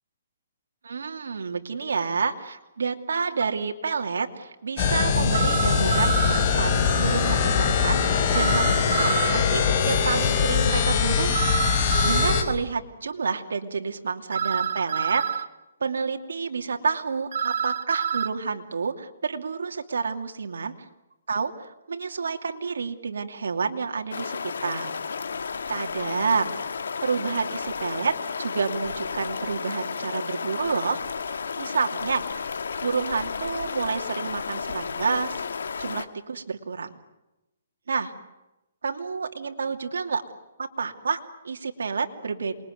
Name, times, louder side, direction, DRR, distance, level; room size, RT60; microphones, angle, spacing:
voice 1, 0.8-11.3 12.0-15.4 15.8-20.7 21.3-24.9 25.7-26.8 27.0-31.0 31.6-32.3 32.8-35.4 35.8-36.9 37.9-38.1 38.8-40.2 40.6-42.5, right 5 dB, 85° right, 4 dB, 2.7 m, -29 dB
sound 1, 3.4-3.5 5.3-6.4 8.3-9.4 11.3-12.5 14.3-15.5 17.3-18.3, right 7 dB, 70° right, 1.2 m, -27 dB
sound 2, 4.8-12.4, left 6 dB, 35° left, 4.5 m, -22 dB
sound 3, 24.1-36.1, left 5 dB, 80° left, 1.9 m, -32 dB
28.0 x 21.5 x 9.4 m, 0.97 s
hypercardioid pair, 160°, 0 cm